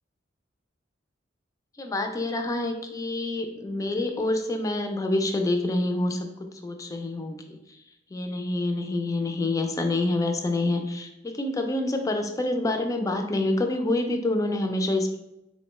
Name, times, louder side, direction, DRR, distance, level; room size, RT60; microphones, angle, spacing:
voice 1, 1.8-7.8 8.1-15.2, left 2 dB, 20° left, 5 dB, 0.3 m, -27 dB
3.5 x 2.1 x 3.0 m, 0.87 s
head